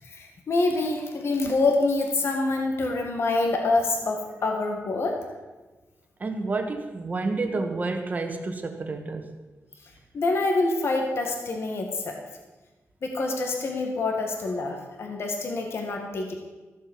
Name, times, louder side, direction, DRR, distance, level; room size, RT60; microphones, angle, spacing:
voice 1, 0.0-5.2 10.1-12.1 13.0-16.3, left 3 dB, 55° left, 2 dB, 1.8 m, -26 dB
voice 2, 6.2-9.3, right 3 dB, 35° right, 5 dB, 1.4 m, -29 dB
15.0 x 7.3 x 7.4 m, 1.2 s
wide cardioid pair, 170°, 5 cm